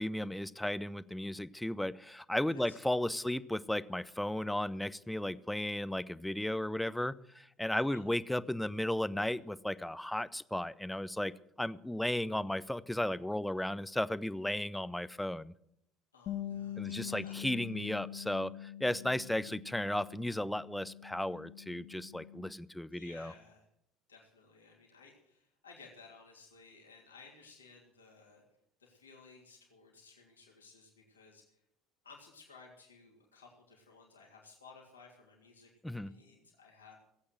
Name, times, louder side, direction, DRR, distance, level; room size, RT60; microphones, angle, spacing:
voice 1, 0.0-11.3 11.6-15.5 16.8-23.3 35.8-36.1, left 1 dB, 5° left, 17 dB, 0.6 m, -35 dB
voice 2, 2.5-3.3 7.7-8.0 16.1-17.4 22.9-23.6 24.1-28.4 28.8-31.4 32.0-37.0, left 4 dB, 85° left, -2 dB, 3.0 m, -57 dB
Bass guitar, 16.3-22.5, left 11 dB, 50° left, 1.1 m, -44 dB
17.0 x 8.5 x 7.7 m, 0.74 s
figure-of-eight pair, 65°, 0 cm